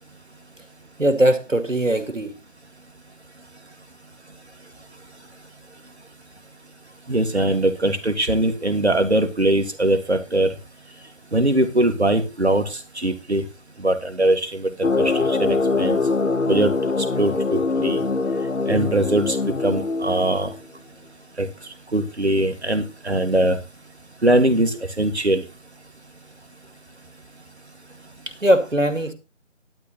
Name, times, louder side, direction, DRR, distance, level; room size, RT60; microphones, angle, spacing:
voice 1, 1.0-2.3 28.4-29.1, right 1 dB, 85° right, 8 dB, 2.4 m, -20 dB
voice 2, 7.1-10.5 11.3-13.4 13.8-14.7 15.0-16.0 16.5-16.7 17.2-18.0 18.7-19.4 19.6-20.5 21.4-21.5 21.9-23.6 24.2-25.4, right 1 dB, 60° right, 8 dB, 1.9 m, -21 dB
sound 1, 14.8-20.6, left 3 dB, 85° left, 1.0 m, -23 dB
12.0 x 4.1 x 7.8 m, 0.29 s
figure-of-eight pair, 170°, 38 cm